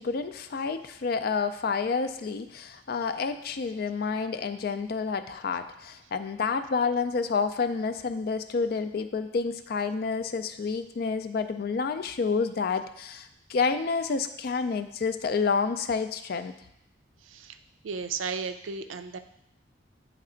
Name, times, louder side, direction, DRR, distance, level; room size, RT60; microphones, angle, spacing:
voice 1, 0.0-16.5, left 5 dB, 50° left, 10 dB, 0.4 m, -29 dB
voice 2, 17.3-17.6 17.8-19.2, right 5 dB, 85° right, 8 dB, 0.4 m, -34 dB
9.5 x 3.2 x 3.8 m, 0.79 s
head